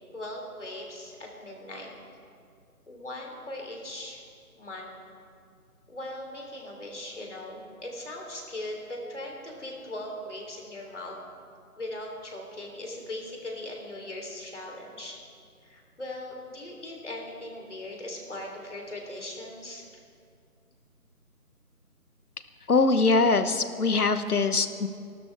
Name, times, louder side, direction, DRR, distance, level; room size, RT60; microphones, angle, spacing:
voice 1, 0.1-1.9 2.9-4.2 4.6-4.9 5.9-11.1 11.8-15.2 15.6-20.0, left 1 dB, 50° left, 0 dB, 3.3 m, -39 dB
voice 2, 22.7-24.9, left 3 dB, 75° left, 10 dB, 1.2 m, -22 dB
26.5 x 12.5 x 3.4 m, 2.3 s
figure-of-eight pair, 180°, 46 cm